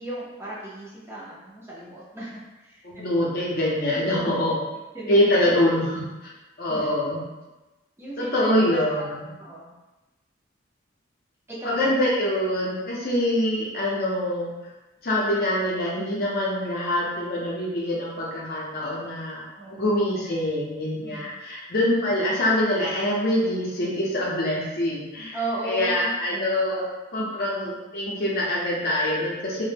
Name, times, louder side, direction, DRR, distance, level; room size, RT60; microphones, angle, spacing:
voice 1, 0.0-2.4 2.7-3.0 4.1-4.5 4.9-5.1 6.7-6.9 8.0-9.1 9.4-9.7 11.5-11.9 19.6-20.0 21.0-21.3 25.3-26.9, right 2 dB, 15° right, -8 dB, 0.5 m, -35 dB
voice 2, 2.8-4.6 5.1-6.3 6.6-7.2 8.2-9.2 11.6-14.5 15.0-19.4 19.8-26.8 27.1-29.6, left 1 dB, 50° left, -4 dB, 0.6 m, -24 dB
2.1 x 2.0 x 3.2 m, 1.1 s
head